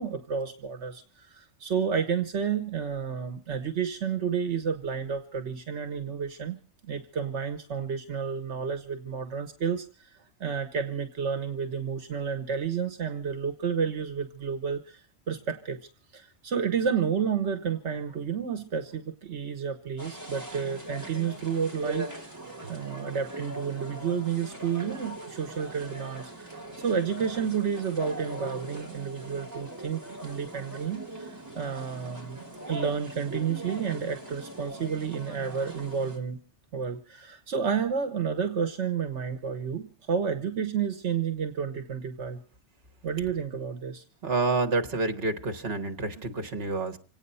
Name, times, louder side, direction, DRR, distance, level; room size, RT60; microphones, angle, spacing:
voice 1, 0.0-6.6 6.8-15.8 16.1-22.1 22.6-36.4 36.7-42.4 43.0-44.0, right 7 dB, 75° right, 1.3 m, -31 dB
sound 1, 20.0-36.2, right 1 dB, 15° right, 3.1 m, -40 dB
voice 2, 44.2-47.0, right 3 dB, 60° right, 1.6 m, -28 dB
26.5 x 9.1 x 5.5 m
omnidirectional pair, 1.2 m